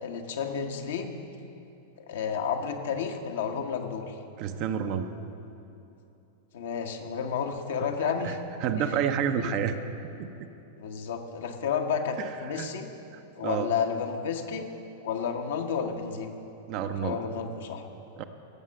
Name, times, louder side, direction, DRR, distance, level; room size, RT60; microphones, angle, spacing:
voice 1, 0.0-1.2 2.1-4.2 6.5-8.4 8.8-8.9 10.8-12.9 13.4-14.7 15.0-16.3 17.0-17.8, left 6 dB, 60° left, 4 dB, 1.1 m, -31 dB
voice 2, 4.4-5.1 8.2-8.3 8.6-9.8 10.2-10.3 12.6-12.7 13.1-13.7 16.7-17.2 18.2-18.3, right 8 dB, 40° right, 8 dB, 0.7 m, -29 dB
16.0 x 7.4 x 6.4 m, 2.8 s
figure-of-eight pair, 95°, 0 cm